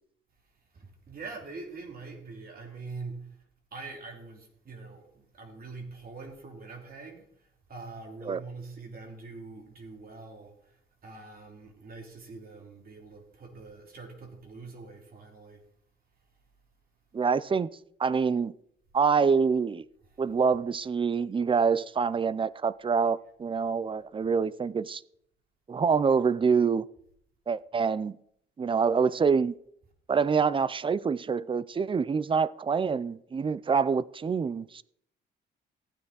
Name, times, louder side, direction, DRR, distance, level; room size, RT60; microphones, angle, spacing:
voice 1, 0.7-3.3 3.7-7.3 7.7-10.8 11.0-15.6, right 3 dB, 50° right, 3.0 m, -44 dB
voice 2, 17.1-17.7 18.0-18.5 18.9-19.8 20.2-25.0 25.7-26.8 27.5-28.2 28.6-29.5 30.1-34.8, right 5 dB, 25° right, 0.5 m, -26 dB
15.0 x 9.4 x 4.0 m
cardioid pair, 90°, 20 cm